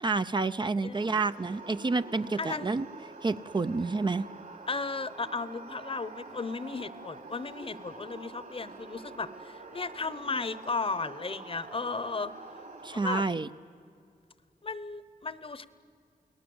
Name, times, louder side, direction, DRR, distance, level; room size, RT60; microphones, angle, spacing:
voice 1, 0.0-2.9 3.2-4.3 12.8-13.5, right 3 dB, 30° right, 11 dB, 0.5 m, -29 dB
voice 2, 0.8-1.2 2.4-2.7 4.7-12.3 12.9-13.2 14.6-15.6, left 4 dB, 35° left, 15 dB, 0.9 m, -35 dB
sound 1, 0.9-13.0, right 3 dB, 60° right, 3.6 m, -46 dB
29.5 x 19.5 x 7.9 m, 2.3 s
wide cardioid pair, 145°, 15 cm